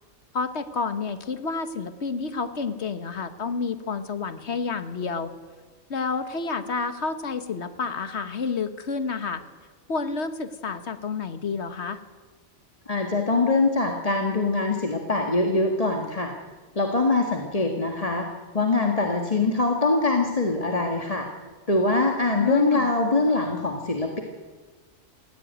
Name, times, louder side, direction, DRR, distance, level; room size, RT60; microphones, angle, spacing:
voice 1, 0.3-5.3 5.9-9.4 9.9-12.0 22.3-22.9, left 4 dB, 70° left, 10 dB, 1.6 m, -29 dB
voice 2, 12.9-16.3 16.7-18.3 18.5-21.3 21.7-24.2, left 3 dB, 30° left, 3 dB, 1.6 m, -23 dB
17.5 x 16.0 x 9.2 m, 1.4 s
omnidirectional pair, 1.2 m